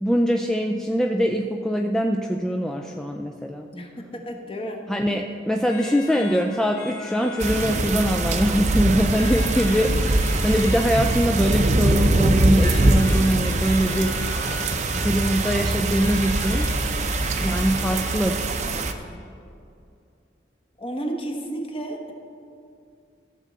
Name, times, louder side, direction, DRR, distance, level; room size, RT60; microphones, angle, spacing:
voice 1, 0.0-3.7 4.9-14.4 14.9-16.7 17.4-18.4, equal, 5° left, 2 dB, 0.3 m, -23 dB
voice 2, 3.7-5.2 18.6-18.9 20.8-22.1, right 1 dB, 30° left, 2 dB, 1.2 m, -33 dB
sound 1, 5.7-19.3, left 5 dB, 65° left, 1.1 m, -40 dB
sound 2, 7.4-18.9, right 2 dB, 40° right, 0.6 m, -22 dB
14.5 x 7.4 x 3.9 m, 2.5 s
head